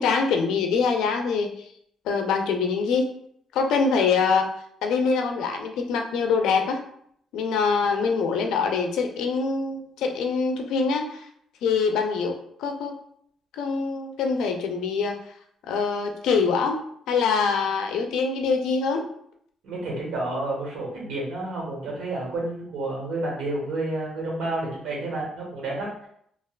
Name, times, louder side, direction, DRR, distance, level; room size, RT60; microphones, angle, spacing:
voice 1, 0.0-1.7 2.1-3.1 3.5-4.5 4.8-6.8 7.3-11.2 11.6-12.9 13.6-15.2 15.7-16.8 17.1-19.1, left 5 dB, 85° left, 4 dB, 0.4 m, -24 dB
voice 2, 19.6-26.1, right 2 dB, 85° right, -3 dB, 1.2 m, -30 dB
3.2 x 2.3 x 2.3 m, 0.68 s
cardioid pair, 90°, 0 cm